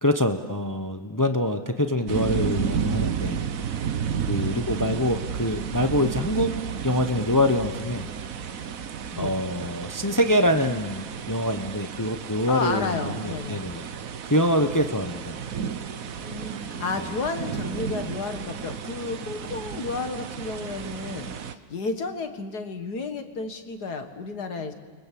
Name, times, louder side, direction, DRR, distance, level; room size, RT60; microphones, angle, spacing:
voice 1, 0.0-3.5 4.3-8.1 9.2-13.8 14.3-15.4 17.0-17.1, left 1 dB, 30° left, 7 dB, 0.3 m, -25 dB
sound 1, 2.1-21.5, right 7 dB, 50° right, 1.2 m, -32 dB
voice 2, 4.4-5.1 9.1-9.4 12.5-13.6 16.2-24.7, left 4 dB, 50° left, 7 dB, 2.2 m, -32 dB
29.0 x 24.0 x 7.6 m, 1.4 s
omnidirectional pair, 2.2 m